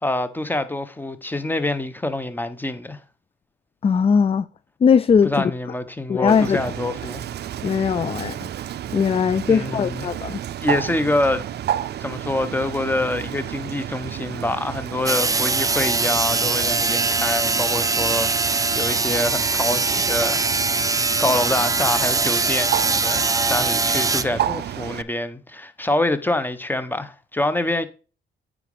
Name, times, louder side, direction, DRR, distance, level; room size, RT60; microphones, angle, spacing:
voice 1, 0.0-3.0 5.2-7.2 9.5-10.1 10.6-11.4 12.0-20.5 20.9-27.9, left 1 dB, 10° left, 1.1 m, -26 dB
voice 2, 3.8-4.5 4.8-5.3 6.1-6.6 7.6-8.4 8.9-10.4, left 6 dB, 30° left, 0.4 m, -19 dB
Bird, 6.3-25.0, right 11 dB, 55° right, 0.5 m, -31 dB
sound 1, 15.1-24.2, right 3 dB, 15° right, 0.7 m, -22 dB
9.3 x 5.1 x 5.0 m
cardioid pair, 90°, 20 cm